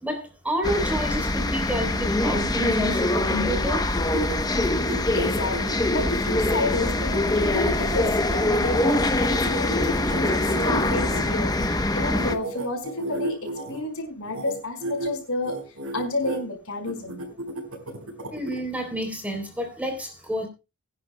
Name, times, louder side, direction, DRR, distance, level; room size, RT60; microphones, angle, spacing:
voice 1, 0.0-3.8 18.3-20.5, equal, 5° right, 3.5 m, -29 dB
sound 1, 0.6-12.4, left 2 dB, 15° left, 0.8 m, -24 dB
sound 2, 3.9-11.7 12.1-13.8 14.2-14.5 14.8-15.1 15.4-16.4 16.8-18.6, right 1 dB, 70° right, 4.6 m, -34 dB
voice 2, 4.8-15.6 15.9-17.3, left 2 dB, 70° left, 5.0 m, -31 dB
23.0 x 10.5 x 2.2 m
head